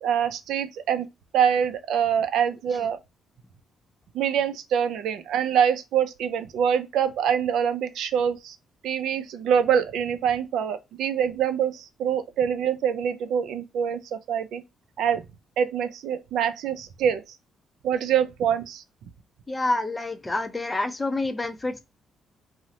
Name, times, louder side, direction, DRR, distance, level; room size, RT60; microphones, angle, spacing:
voice 1, 0.0-1.1 1.3-3.0 4.1-8.6 8.8-14.6 15.0-15.2 15.6-17.4 17.8-18.8, right 8 dB, 80° right, 0.3 m, -25 dB
voice 2, 19.5-21.8, left 2 dB, 15° left, 0.5 m, -27 dB
2.7 x 2.0 x 2.7 m
cardioid pair, 90°, 0 cm